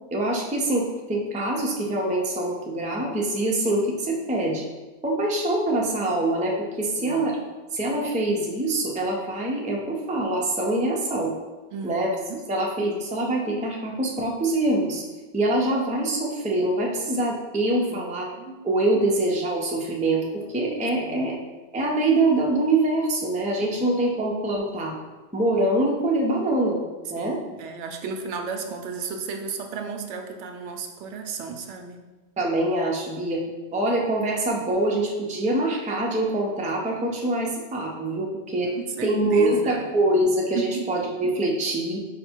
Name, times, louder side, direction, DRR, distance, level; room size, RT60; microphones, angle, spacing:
voice 1, 0.1-4.7 5.0-7.4 7.7-11.3 11.8-12.1 12.5-15.0 15.3-18.3 18.6-21.4 21.7-25.0 25.3-26.8 27.1-27.4 32.4-33.4 33.7-38.7 39.0-42.0, right 1 dB, 10° right, -2 dB, 0.3 m, -24 dB
voice 2, 6.9-7.3 11.7-12.4 17.9-18.0 18.3-18.6 21.0-21.4 23.6-23.9 27.2-32.0 33.5-33.6 38.6-39.9 40.5-40.9, right 5 dB, 85° right, 4 dB, 0.9 m, -34 dB
5.2 x 2.1 x 4.4 m, 1.2 s
omnidirectional pair, 1.2 m